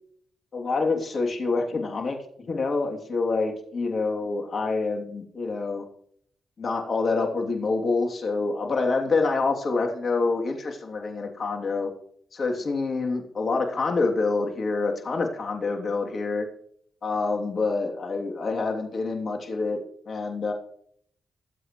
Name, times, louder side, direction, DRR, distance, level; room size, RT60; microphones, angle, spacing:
voice 1, 0.5-5.8 6.6-11.9 12.3-16.5 17.0-19.8 20.1-20.5, left 3 dB, 55° left, 2 dB, 3.0 m, -27 dB
23.5 x 8.2 x 3.2 m, 0.64 s
supercardioid pair, 45°, 0 cm